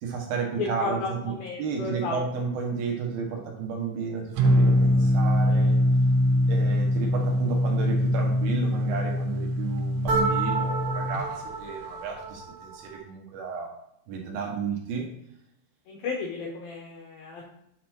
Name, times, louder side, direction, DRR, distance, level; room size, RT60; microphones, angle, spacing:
voice 1, 0.0-5.8 6.5-13.7 14.1-15.1, right 5 dB, 65° right, 0 dB, 2.6 m, -32 dB
voice 2, 0.6-2.2 15.9-17.5, left 4 dB, 80° left, -1 dB, 2.1 m, -33 dB
sound 1, 4.4-11.2, left 1 dB, 80° right, 3.3 m, -23 dB
sound 2, 10.1-13.0, right 4 dB, 50° right, 1.4 m, -30 dB
9.4 x 4.3 x 4.4 m, 0.78 s
omnidirectional pair, 5.4 m